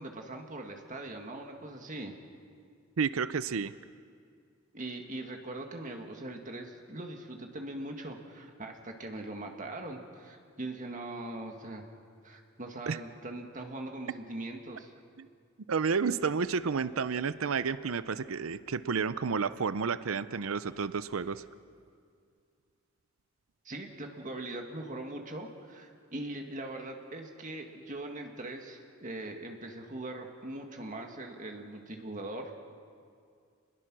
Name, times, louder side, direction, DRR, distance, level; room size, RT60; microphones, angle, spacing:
voice 1, 0.0-2.1 4.7-11.8 12.2-14.9 23.6-32.5, right 2 dB, 40° right, 3 dB, 1.9 m, -41 dB
voice 2, 3.0-3.7 12.9-13.0 15.2-15.3 15.7-21.4, right 5 dB, 75° right, 14 dB, 0.6 m, -31 dB
29.5 x 21.0 x 6.2 m, 2.2 s
head